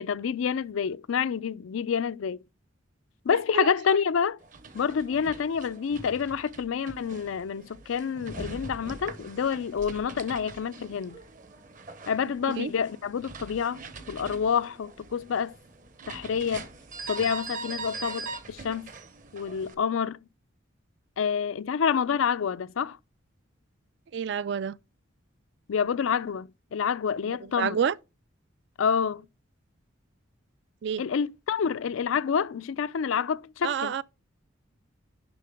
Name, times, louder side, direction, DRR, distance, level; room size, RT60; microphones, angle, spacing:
voice 1, 0.0-2.4 3.2-4.4 4.7-11.2 12.1-13.8 14.1-15.5 16.1-16.7 17.1-18.9 19.3-20.2 21.2-23.0 25.7-27.8 28.8-29.3 31.0-33.9, left 7 dB, 85° left, 0.4 m, -28 dB
sound 1, 4.4-19.8, right 3 dB, 40° right, 0.8 m, -42 dB
voice 2, 24.1-24.8 27.6-27.9 30.8-31.0 33.6-34.0, right 7 dB, 55° right, 0.3 m, -28 dB
10.5 x 3.8 x 3.4 m
head